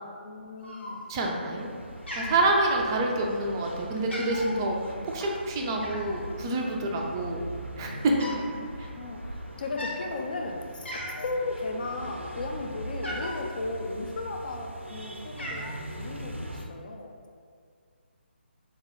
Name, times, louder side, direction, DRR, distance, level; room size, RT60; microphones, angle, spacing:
voice 1, 0.2-1.1 6.8-7.2 8.1-15.7 16.0-17.1, left 3 dB, 45° left, 2 dB, 0.4 m, -36 dB
Cat, 0.6-1.3 1.6-1.8 2.1-3.1 3.6-3.7 4.0-4.6 5.8-6.2 7.0-7.1 7.3-8.5 8.8-9.0 9.7-10.0 10.5-10.6 10.9-11.4 11.8-13.5 14.3-14.8 15.1-15.7, left 1 dB, 75° left, 0.9 m, -38 dB
voice 2, 1.1-1.7 2.2-7.5 7.8-8.2 8.8-8.9, right 2 dB, 20° right, 0 dB, 0.3 m, -27 dB
sound 1, 1.5-16.6, right 1 dB, 90° right, 0.4 m, -41 dB
4.7 x 2.1 x 3.3 m, 2.1 s
figure-of-eight pair, 145°, 6 cm